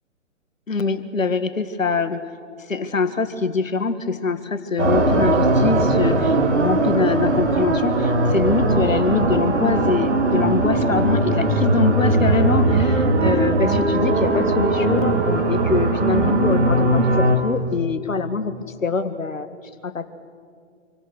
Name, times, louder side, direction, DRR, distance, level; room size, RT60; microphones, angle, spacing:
voice 1, 0.7-2.2 2.6-18.6 18.8-19.5 19.8-20.1, left 4 dB, 75° left, 11 dB, 1.8 m, -24 dB
sound 1, 4.8-17.4, right 2 dB, 60° right, 3.9 m, -19 dB
27.5 x 24.0 x 6.5 m, 2.1 s
figure-of-eight pair, 130°, 39 cm